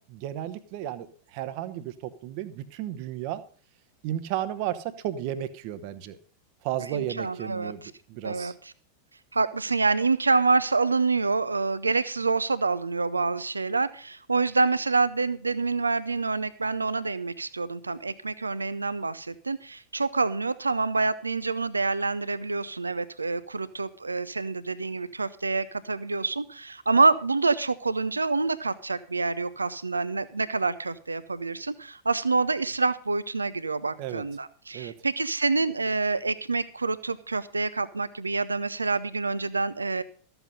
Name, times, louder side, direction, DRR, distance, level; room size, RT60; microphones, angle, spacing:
voice 1, 0.1-3.4 4.0-6.2 6.6-7.8 8.1-8.5 34.0-34.2 34.7-34.9, right 12 dB, 45° right, 12 dB, 1.0 m, -33 dB
voice 2, 6.8-7.9 8.2-8.7 9.3-40.0, right 3 dB, 80° right, 15 dB, 0.7 m, -27 dB
13.5 x 8.0 x 5.4 m, 0.40 s
figure-of-eight pair, 90°, 0 cm